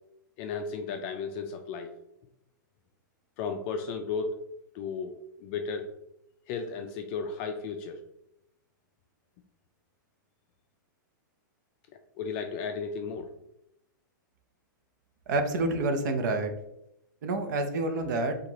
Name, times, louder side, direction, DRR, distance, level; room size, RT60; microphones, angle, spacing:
voice 1, 0.4-1.9 3.4-4.4 4.7-5.1 5.4-5.9 6.5-8.0 12.2-13.3, left 5 dB, 35° left, 6 dB, 0.4 m, -34 dB
voice 2, 15.3-16.5 17.2-18.4, right 2 dB, 60° right, 7 dB, 0.8 m, -28 dB
4.6 x 2.5 x 4.0 m, 0.80 s
hypercardioid pair, 150°, 11 cm